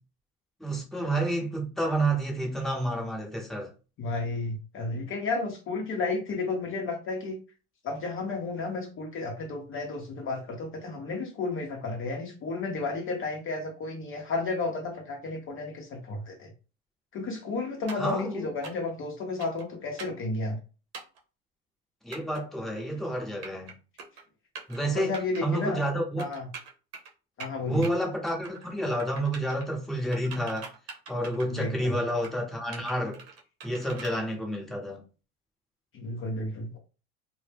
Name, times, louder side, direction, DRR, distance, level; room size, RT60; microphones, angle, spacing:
voice 1, 0.6-3.7 18.0-18.5 22.0-23.7 24.7-25.1 25.4-26.2 27.7-30.7 31.1-33.2 33.6-35.0, right 1 dB, ahead, 0.7 m, -29 dB
voice 2, 4.0-7.4 7.8-16.5 17.1-20.6 24.9-25.8 26.2-26.5 27.4-27.9 31.5-31.9 35.9-36.8, left 3 dB, 40° left, 0.6 m, -32 dB
sound 1, 17.9-18.1 18.6-18.9 19.4-19.7 20.0-20.2 20.9-21.2 22.1-22.4 23.2-23.7 24.0-24.2 24.6-24.8 25.1-25.4 26.2-27.1 27.4-27.9 28.3-28.7 29.0-29.7 30.1-31.7 32.1-32.4 32.7-34.2, right 5 dB, 90° right, 0.7 m, -43 dB
2.0 x 2.0 x 3.3 m
hypercardioid pair, 85°, 33 cm